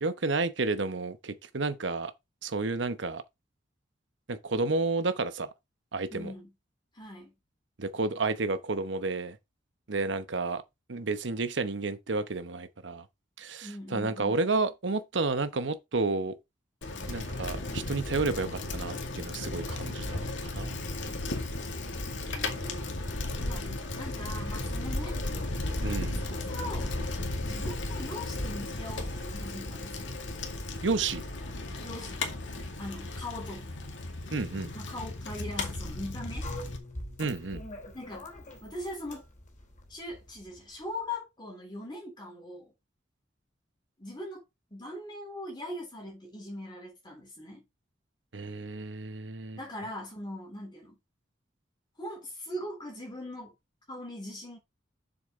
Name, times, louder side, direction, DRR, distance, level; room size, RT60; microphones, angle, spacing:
voice 1, 0.0-2.1 2.4-3.2 4.3-5.5 5.9-6.3 7.8-9.4 9.9-10.6 10.9-13.0 13.4-16.3 17.1-20.8 25.8-26.2 30.8-31.2 34.3-34.7 37.2-37.6 48.3-49.6, right 3 dB, 70° right, 1.0 m, -31 dB
voice 2, 6.1-6.5 6.9-7.3 13.6-14.4 21.0-21.1 21.6-21.7 22.3-22.8 23.4-23.7 23.9-25.2 26.2-27.0 27.4-30.1 31.8-32.4 32.8-33.7 34.7-36.5 37.9-38.3 38.6-39.2 39.9-42.7 44.0-44.4 44.7-47.6 49.5-51.0 52.0-53.5 53.9-54.6, left 1 dB, 25° left, 3.4 m, -41 dB
Bicycle, 16.8-36.8, left 2 dB, 75° left, 2.1 m, -35 dB
sound 1, 35.6-40.8, left 1 dB, 40° left, 3.3 m, -43 dB
7.3 x 6.9 x 3.7 m
head